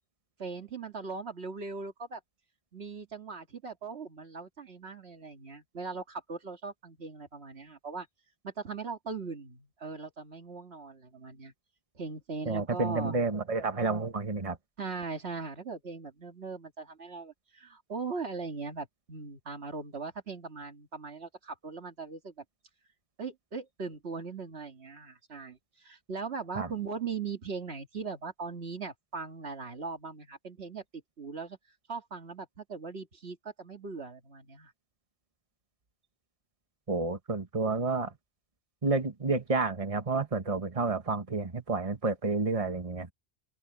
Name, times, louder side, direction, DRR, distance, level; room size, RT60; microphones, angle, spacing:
voice 1, 0.4-2.2 2.7-8.1 8.4-11.5 11.9-13.2 14.8-22.3 23.2-31.6 31.9-34.7, right 4 dB, 85° right, 2.2 m, -39 dB
voice 2, 12.4-14.6 26.5-26.7 36.9-38.1 38.8-43.1, right 3 dB, 35° right, 1.5 m, -30 dB
open air
omnidirectional pair, 1.1 m